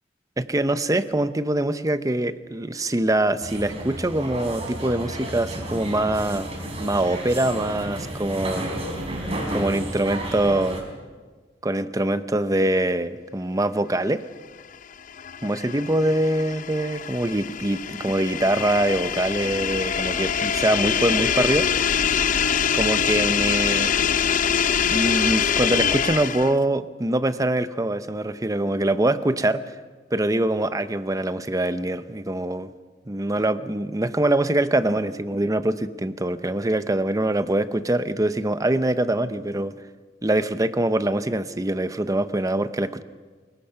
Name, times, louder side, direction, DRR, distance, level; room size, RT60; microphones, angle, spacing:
voice 1, 0.4-6.5 6.8-8.7 9.5-10.8 11.6-14.2 15.4-21.9 22.7-24.0 24.9-29.7 30.1-32.7 33.1-39.7 40.2-43.0, right 1 dB, 20° right, 12 dB, 0.8 m, -24 dB
sound 1, 3.4-10.8, right 1 dB, 35° right, 4.4 m, -32 dB
sound 2, 14.7-26.7, left 7 dB, 45° left, 0.6 m, -24 dB
25.0 x 22.0 x 5.9 m, 1.4 s
head